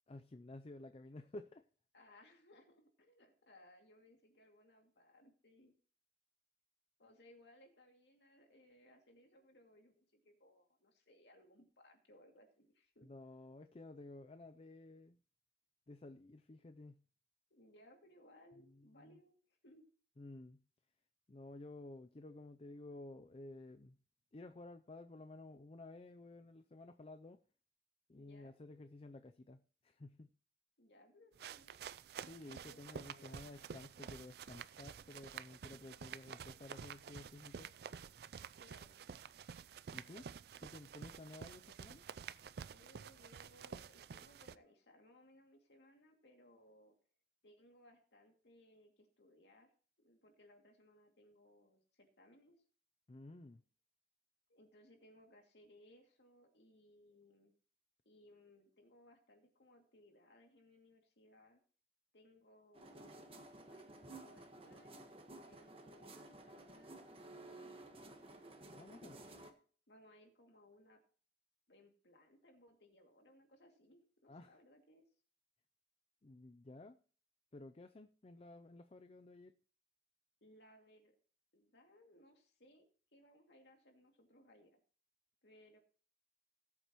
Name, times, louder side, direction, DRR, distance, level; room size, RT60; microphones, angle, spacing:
voice 1, 0.1-1.7 13.0-15.2 15.9-17.0 18.6-19.2 20.2-20.6 21.3-24.0 24.3-27.4 28.1-30.3 32.3-37.7 39.9-40.3 40.6-42.0 53.1-53.6 68.7-69.2 74.3-74.6 76.2-77.0 77.5-79.5, left 2 dB, 35° left, 0.5 m, -53 dB
voice 2, 1.9-5.7 7.0-13.1 17.5-19.4 19.6-19.9 28.2-28.5 30.8-31.8 32.5-33.7 38.6-39.0 42.7-46.9 47.4-49.7 50.0-52.5 54.5-57.5 58.0-61.6 62.1-63.2 63.7-65.0 65.4-67.8 69.9-71.0 71.7-75.1 80.4-81.2 81.5-84.8 85.4-85.8, left 1 dB, 70° left, 2.5 m, -65 dB
sound 1, 31.4-44.6, right 7 dB, 60° right, 0.4 m, -50 dB
sound 2, 62.7-69.5, right 2 dB, 30° right, 1.4 m, -54 dB
18.5 x 8.2 x 3.0 m
head